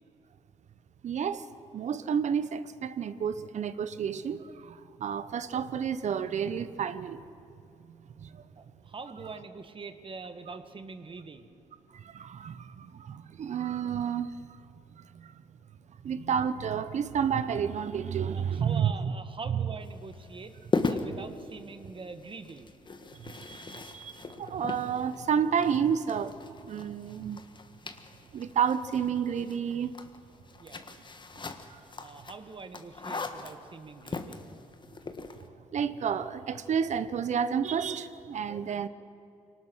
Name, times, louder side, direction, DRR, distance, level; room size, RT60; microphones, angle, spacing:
voice 1, 1.0-7.2 7.9-8.4 11.9-14.6 15.0-15.3 16.0-19.1 19.5-19.7 23.1-27.4 28.3-29.9 31.7-31.8 35.7-38.9, right 7 dB, 60° right, 13 dB, 0.9 m, -31 dB
voice 2, 8.6-11.5 18.3-20.6 20.9-22.7 30.6-30.9 32.0-34.4, right 4 dB, 40° right, 9 dB, 1.6 m, -44 dB
sound 1, 19.8-35.5, left 3 dB, 35° left, 1.6 m, -39 dB
23.5 x 19.0 x 6.3 m, 2.6 s
supercardioid pair, 70°, 14 cm